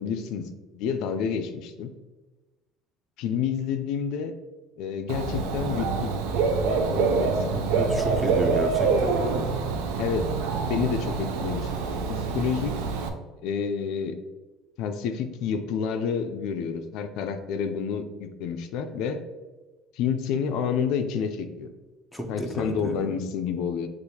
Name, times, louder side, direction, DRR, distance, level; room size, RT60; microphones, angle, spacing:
voice 1, 0.0-1.9 3.2-4.3 4.8-6.1 6.7-7.7 10.0-10.3 10.6-11.7 12.1-12.7 13.4-14.2 14.8-19.2 19.9-21.7 22.3-23.9, left 7 dB, 65° left, 7 dB, 0.3 m, -29 dB
Dog / Bird, 5.1-13.1, right 4 dB, 90° right, 0.5 m, -26 dB
voice 2, 7.7-9.6 22.1-23.2, right 1 dB, ahead, 2 dB, 0.5 m, -32 dB
6.3 x 2.5 x 2.8 m, 1.2 s
cardioid pair, 140°, 0 cm